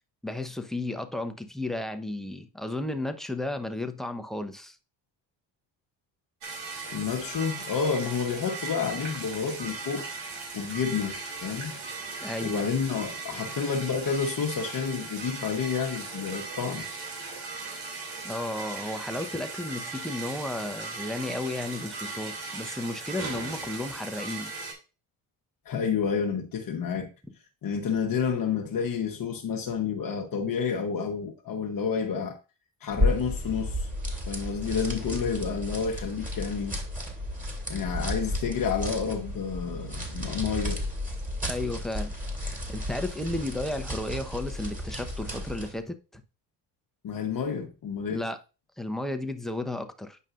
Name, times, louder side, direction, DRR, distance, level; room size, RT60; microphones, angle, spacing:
voice 1, 0.2-4.8 12.2-12.6 18.2-24.5 41.4-42.1 42.7-46.2 48.1-48.4 48.8-50.2, left 2 dB, ahead, 0.9 m, -33 dB
sound 1, 6.4-24.7, right 4 dB, 80° right, 2.8 m, -38 dB
voice 2, 6.9-10.1 10.5-11.7 12.4-16.9 25.6-27.1 27.6-32.4 32.8-33.9 34.3-36.8 37.7-40.8 47.0-48.2, left 6 dB, 50° left, 1.1 m, -30 dB
sound 2, 32.9-45.8, left 1 dB, 20° right, 2.6 m, -33 dB
9.1 x 5.3 x 2.5 m
cardioid pair, 80°, 42 cm